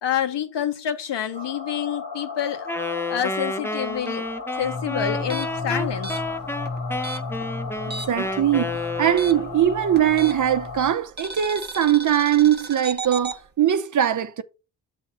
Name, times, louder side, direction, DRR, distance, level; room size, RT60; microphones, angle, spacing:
voice 1, 0.0-2.7 3.1-4.2 4.6-6.2, left 9 dB, 70° left, 1.2 m, -27 dB
sound 1, 1.3-10.9, left 3 dB, 85° left, 1.4 m, -33 dB
Wind instrument woodwind instrument, 2.7-9.6, left 2 dB, 5° left, 0.5 m, -30 dB
sound 2, 5.2-8.3 8.6-10.6 11.2-13.4, right 4 dB, 25° right, 0.9 m, -35 dB
voice 2, 8.1-8.7 9.0-14.4, right 10 dB, 45° right, 0.6 m, -21 dB
7.1 x 3.6 x 5.4 m
cardioid pair, 70°, 44 cm